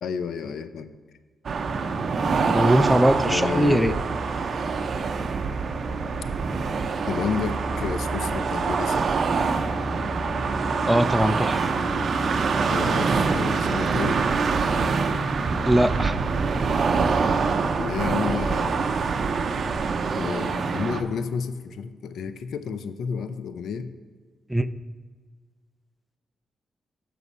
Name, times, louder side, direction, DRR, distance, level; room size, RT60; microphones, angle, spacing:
voice 1, 0.0-1.0 3.2-4.0 7.1-9.1 12.7-14.3 17.8-18.9 20.2-23.9, left 6 dB, 75° left, 11 dB, 0.4 m, -31 dB
sound 1, 1.4-21.0, right 4 dB, 55° right, 0.6 m, -25 dB
voice 2, 2.5-3.9 10.8-11.7 15.6-16.2 24.5-24.7, right 1 dB, ahead, 11 dB, 0.4 m, -21 dB
6.9 x 6.1 x 5.4 m, 1.5 s
cardioid pair, 80°, 0 cm